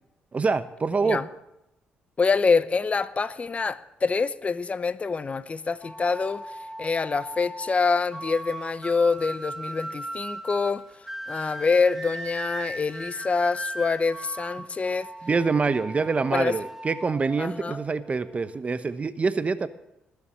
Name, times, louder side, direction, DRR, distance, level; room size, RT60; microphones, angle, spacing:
voice 1, 0.3-1.2 15.2-19.7, right 4 dB, 35° right, 1.0 m, -25 dB
voice 2, 2.2-10.8 11.3-15.1 16.3-16.6 17.4-17.8, left 4 dB, 35° left, 0.7 m, -25 dB
sound 1, 5.8-18.6, right 1 dB, 5° right, 1.1 m, -38 dB
19.5 x 7.1 x 7.6 m
supercardioid pair, 65°, 4 cm